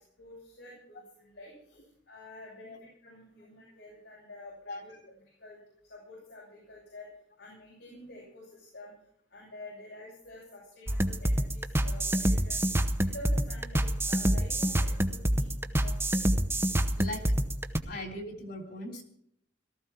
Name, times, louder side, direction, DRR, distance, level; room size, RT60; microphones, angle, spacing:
voice 1, 0.2-1.8 2.1-2.7 3.0-4.9 5.4-5.6 5.9-7.1 7.4-8.9 9.3-12.6 13.0-16.2, left 1 dB, 90° left, -5 dB, 7.6 m, -48 dB
sound 1, 10.9-17.8, right 1 dB, 15° right, 0.8 m, -27 dB
voice 2, 16.9-17.3 17.9-19.0, left 1 dB, 55° left, 4 dB, 3.4 m, -40 dB
18.0 x 14.0 x 4.5 m, 0.69 s
head